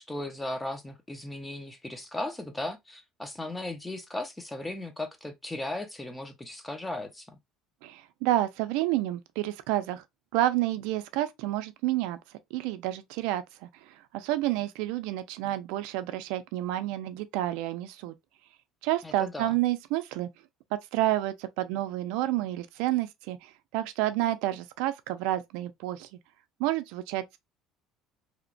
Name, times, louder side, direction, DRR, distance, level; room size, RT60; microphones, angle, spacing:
voice 1, 0.0-7.4 19.0-19.6, left 1 dB, 10° left, 0.5 m, -37 dB
voice 2, 7.8-10.0 10.3-12.2 12.5-18.1 18.8-20.3 20.7-26.1 26.6-27.4, right 15 dB, 80° right, 0.3 m, -29 dB
2.8 x 2.1 x 2.4 m
cardioid pair, 130°, 0 cm